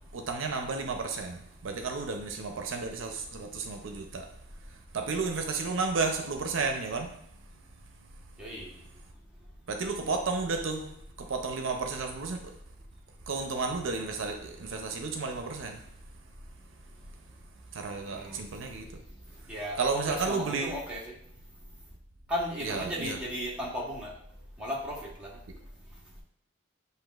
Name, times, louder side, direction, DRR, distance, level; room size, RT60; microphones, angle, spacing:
voice 1, 0.1-4.3 4.9-7.1 9.7-12.5 13.3-15.8 17.7-18.9 19.8-20.7 22.6-23.2, right 4 dB, 70° right, 4 dB, 0.5 m, -32 dB
voice 2, 8.4-8.7 18.1-18.4 19.5-21.0 22.3-24.1 24.6-25.3, equal, 5° right, -5 dB, 1.0 m, -35 dB
7.7 x 2.8 x 2.4 m, 0.70 s
head